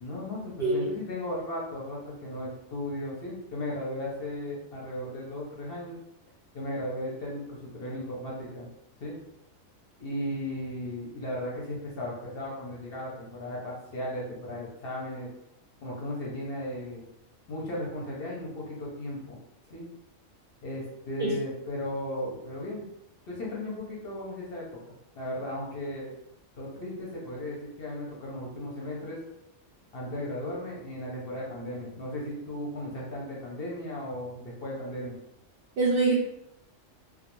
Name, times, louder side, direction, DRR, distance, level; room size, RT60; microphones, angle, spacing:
voice 1, 0.0-6.0 6.5-8.7 9.0-9.2 10.0-15.3 15.8-17.0 17.5-19.4 19.7-19.9 20.6-22.9 23.2-26.1 26.6-29.2 29.9-35.1, left 1 dB, 55° left, -4 dB, 0.7 m, -36 dB
voice 2, 35.8-36.1, right 3 dB, 65° right, -5 dB, 0.6 m, -24 dB
2.3 x 2.1 x 2.9 m, 0.82 s
omnidirectional pair, 1.4 m